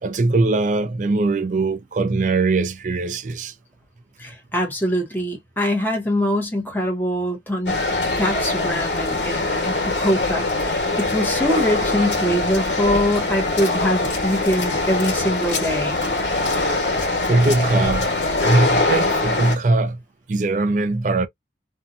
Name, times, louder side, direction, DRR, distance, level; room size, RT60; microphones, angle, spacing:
voice 1, 0.0-3.5 17.2-18.1 18.4-20.0 20.3-21.3, right 2 dB, 45° right, 0.4 m, -20 dB
voice 2, 4.2-7.8 8.1-16.0, equal, 10° left, 0.8 m, -23 dB
sound 1, 7.7-19.6, left 2 dB, 85° left, 1.1 m, -22 dB
2.7 x 2.1 x 2.5 m
head